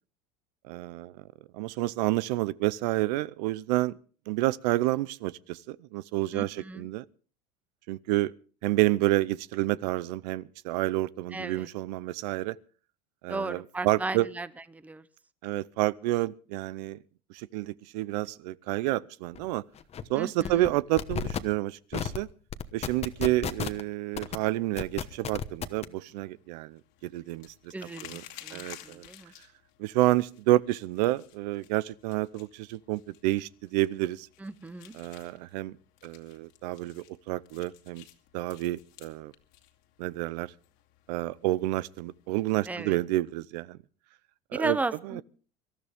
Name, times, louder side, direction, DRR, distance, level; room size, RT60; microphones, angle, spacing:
voice 1, 0.7-1.1 1.5-3.9 4.3-7.0 7.9-8.3 8.6-12.6 13.2-14.3 15.4-17.0 17.3-19.6 20.1-22.3 22.7-27.5 28.0-28.2 28.5-29.0 29.8-34.3 34.9-35.8 36.0-38.0 38.3-39.3 40.0-40.5 41.1-43.8 44.5-44.8 45.2-45.3, right 17 dB, 80° right, 0.7 m, -29 dB
voice 2, 6.3-6.9 11.3-11.7 13.3-14.5 14.7-15.0 20.1-20.7 27.7-29.3 34.4-35.0 42.7-43.0 44.5-45.2, right 3 dB, 5° right, 0.7 m, -35 dB
sound 1, 19.3-19.5 19.8-20.0 20.4-20.7 21.0-21.4 21.9-22.2 22.5-23.8 24.2-24.4 24.8-25.8, left 8 dB, 30° left, 1.1 m, -32 dB
sound 2, 24.1-42.6, left 13 dB, 65° left, 2.3 m, -55 dB
25.0 x 13.0 x 3.5 m
supercardioid pair, 125°, 21 cm